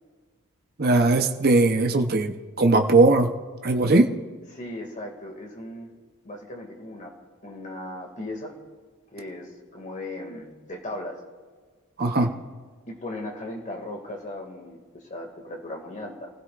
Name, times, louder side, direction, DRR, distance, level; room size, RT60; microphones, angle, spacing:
voice 1, 0.8-3.3 3.6-4.1 12.0-12.3, right 2 dB, 45° right, 4 dB, 0.9 m, -19 dB
voice 2, 4.5-5.9 6.2-7.1 7.4-8.6 9.1-11.2 12.2-12.3 12.9-16.3, left 1 dB, 35° left, 2 dB, 2.4 m, -37 dB
27.0 x 16.0 x 2.6 m, 1.5 s
head